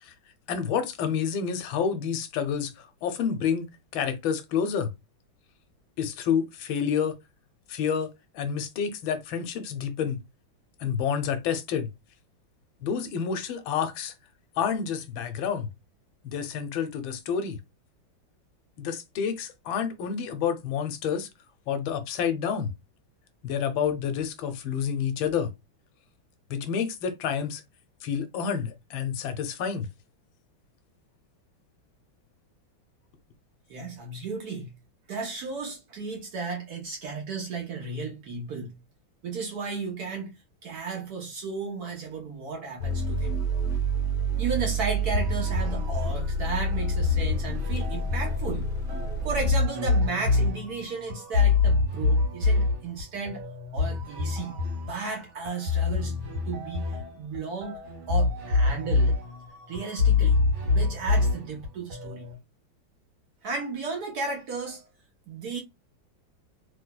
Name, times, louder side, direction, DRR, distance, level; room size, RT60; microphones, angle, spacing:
voice 1, 0.5-3.7 3.9-4.9 6.0-7.2 7.7-10.2 10.8-11.9 12.8-14.1 14.6-15.7 16.2-17.6 18.8-21.3 21.7-22.7 23.4-25.5 26.5-27.6 28.0-29.9, left 7 dB, 85° left, 1.4 m, -29 dB
voice 2, 33.7-34.7 35.1-38.7 39.2-40.3 40.6-43.4 44.4-48.7 49.2-53.4 53.7-56.9 57.2-57.8 58.1-59.2 59.7-60.4 60.7-62.3 63.4-64.9 65.3-65.6, right 4 dB, 60° right, 1.2 m, -34 dB
sound 1, 42.8-49.5, right 2 dB, 40° left, 0.7 m, -28 dB
sound 2, 45.1-62.4, left 4 dB, 80° right, 1.9 m, -26 dB
3.2 x 3.1 x 2.2 m
omnidirectional pair, 2.2 m